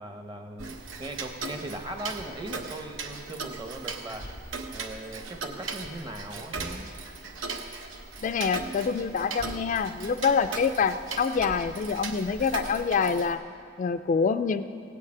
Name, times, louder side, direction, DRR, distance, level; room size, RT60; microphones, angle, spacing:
voice 1, 0.0-4.3 4.7-6.9, right 1 dB, 25° right, 5 dB, 0.9 m, -39 dB
Tick-tock, 0.6-13.3, right 4 dB, 80° right, 1.0 m, -38 dB
voice 2, 8.2-13.4 13.8-14.6, left 5 dB, 40° left, 9 dB, 0.3 m, -26 dB
17.0 x 6.6 x 8.5 m, 2.4 s
head